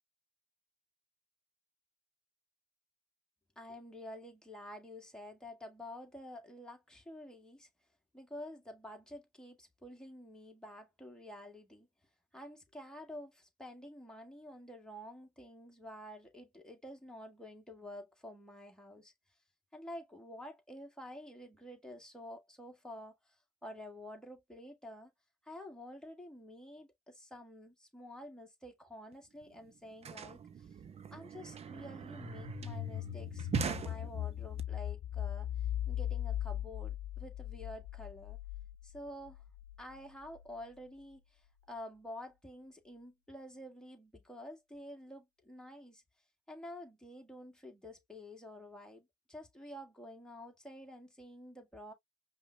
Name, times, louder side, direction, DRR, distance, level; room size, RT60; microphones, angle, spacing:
voice 1, 3.6-7.7 8.1-11.9 12.3-19.1 19.7-25.1 25.4-30.8 31.1-35.5 35.9-38.4 38.8-39.4 39.8-46.0 46.5-51.9, left 1 dB, 5° left, 1.7 m, -49 dB
sound 1, 29.1-29.2 29.4-34.6, right 7 dB, 35° right, 0.7 m, -42 dB
sound 2, 32.2-40.9, left 11 dB, 40° left, 1.3 m, -39 dB
5.3 x 2.4 x 2.9 m
cardioid pair, 110°, 17 cm